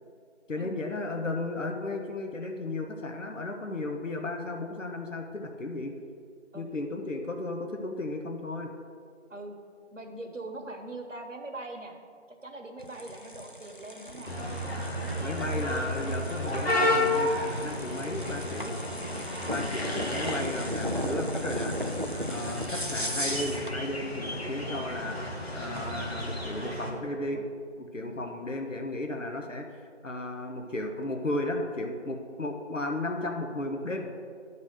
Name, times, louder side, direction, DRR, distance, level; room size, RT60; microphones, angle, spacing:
voice 1, 0.5-5.9 6.5-8.7 15.2-18.8 19.5-21.9 22.3-27.4 27.8-34.1, left 2 dB, 90° left, 3 dB, 1.1 m, -34 dB
voice 2, 9.9-12.0 12.3-14.3 15.0-16.2 19.2-20.6 24.4-24.9 27.3-27.4 28.0-28.3, right 2 dB, 85° right, 3 dB, 1.5 m, -43 dB
sound 1, 12.8-23.8, equal, 45° right, 0.4 m, -36 dB
sound 2, 14.3-26.9, left 1 dB, 55° left, 1.4 m, -32 dB
10.5 x 4.1 x 6.5 m, 2.1 s
figure-of-eight pair, 180°, 37 cm